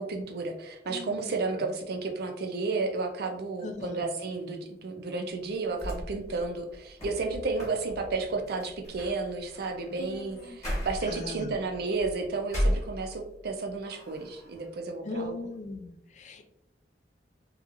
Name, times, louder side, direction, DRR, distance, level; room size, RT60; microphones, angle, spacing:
voice 1, 0.0-15.3, right 3 dB, 60° right, 4 dB, 0.5 m, -32 dB
voice 2, 0.9-1.3 3.6-4.0 10.0-10.6 11.0-11.6 15.0-16.5, left 2 dB, 40° left, 7 dB, 0.3 m, -39 dB
sound 1, 5.7-13.5 13.9-14.7, equal, 20° left, 1.1 m, -36 dB
2.8 x 2.4 x 2.4 m, 0.79 s
head